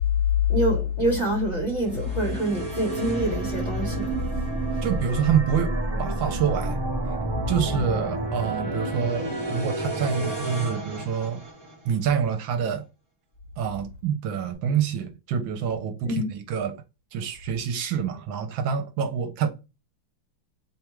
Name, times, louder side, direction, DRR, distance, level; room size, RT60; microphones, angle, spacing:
voice 1, 0.5-4.2 16.0-16.3, equal, 25° left, 1.5 m, -25 dB
sound 1, 1.7-12.0, right 2 dB, 15° right, 1.1 m, -30 dB
voice 2, 4.8-6.8 7.5-11.4 11.8-12.8 13.6-16.8 17.1-19.5, right 7 dB, 80° right, 1.5 m, -27 dB
3.4 x 2.4 x 4.4 m
omnidirectional pair, 2.2 m